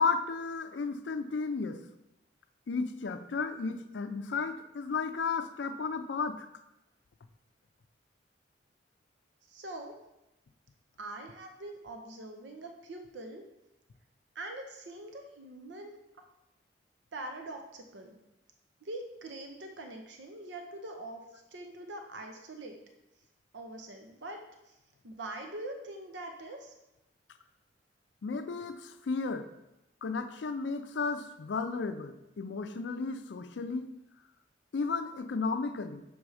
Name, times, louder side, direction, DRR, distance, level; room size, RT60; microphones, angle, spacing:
voice 1, 0.0-1.8 2.7-6.5 28.2-29.5 30.0-33.9 34.7-36.0, left 4 dB, 75° left, 8 dB, 0.4 m, -33 dB
voice 2, 9.4-9.9 11.0-13.4 14.3-16.0 17.1-18.2 18.8-22.8 23.5-24.4 24.7-24.8 25.0-26.7, right 2 dB, 80° right, 4 dB, 0.7 m, -43 dB
6.3 x 3.4 x 4.8 m, 0.92 s
head